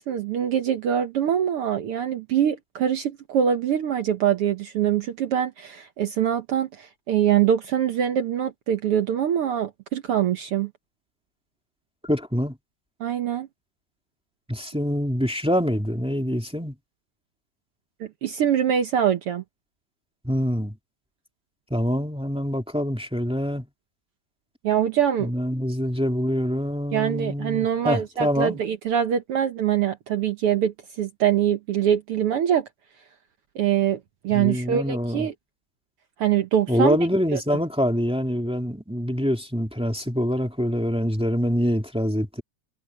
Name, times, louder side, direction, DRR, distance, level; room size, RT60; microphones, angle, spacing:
voice 1, 0.0-10.7 13.0-13.5 18.0-19.4 24.6-25.3 26.9-32.7 33.5-35.3 36.2-37.0 37.3-37.4, right 9 dB, 65° right, 1.5 m, -24 dB
voice 2, 12.0-12.6 14.5-16.7 20.2-20.8 21.7-23.7 25.2-28.6 34.3-35.3 36.7-42.4, equal, ahead, 1.6 m, -25 dB
omnidirectional pair, 3.6 m